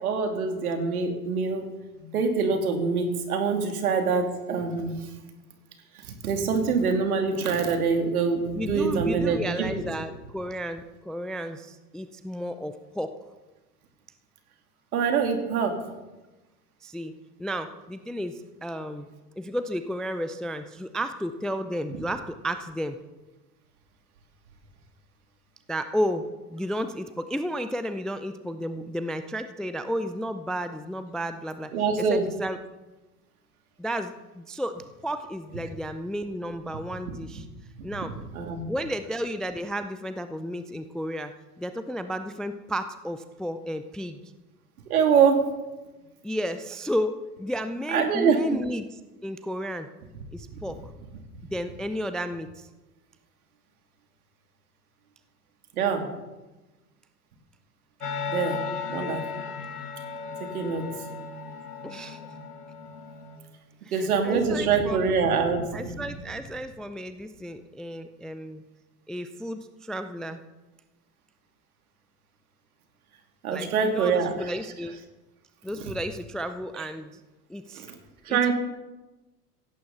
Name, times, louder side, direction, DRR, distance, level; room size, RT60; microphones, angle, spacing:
voice 1, 0.0-1.7 2.0-4.9 6.0-9.7 14.9-15.8 31.7-32.3 38.0-38.1 38.3-38.6 44.9-45.4 47.9-48.4 50.5-50.6 55.8-56.0 58.3-58.6 58.9-59.2 60.5-60.8 63.9-66.0 73.4-74.5 77.7-77.9 78.2-78.5, right 5 dB, 65° right, 4 dB, 3.1 m, -24 dB
voice 2, 8.6-13.2 16.8-19.1 19.4-23.0 25.7-31.7 32.1-32.6 33.8-37.5 37.8-38.1 38.7-44.2 46.2-49.9 50.3-50.9 51.5-52.7 61.8-62.2 63.8-65.1 65.7-68.6 69.1-70.4 73.5-75.0 75.6-77.2 77.5-77.9 78.3-78.5, equal, ahead, 11 dB, 0.4 m, -33 dB
sound 1, 58.0-63.4, left 5 dB, 75° left, 2.3 m, -35 dB
17.0 x 15.5 x 4.2 m, 1.1 s
figure-of-eight pair, 90°, 47 cm